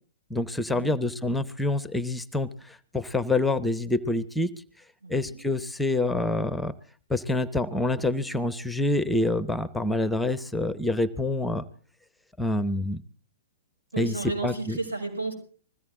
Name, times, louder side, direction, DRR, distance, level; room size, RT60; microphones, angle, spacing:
voice 1, 0.3-4.5 5.1-6.7 7.1-11.6 12.4-13.0 14.0-14.8, left 2 dB, 5° left, 17 dB, 0.7 m, -27 dB
voice 2, 5.0-5.4 13.9-15.3, right 3 dB, 80° right, 3 dB, 6.5 m, -33 dB
21.0 x 15.5 x 3.7 m, 0.43 s
figure-of-eight pair, 115°, 0 cm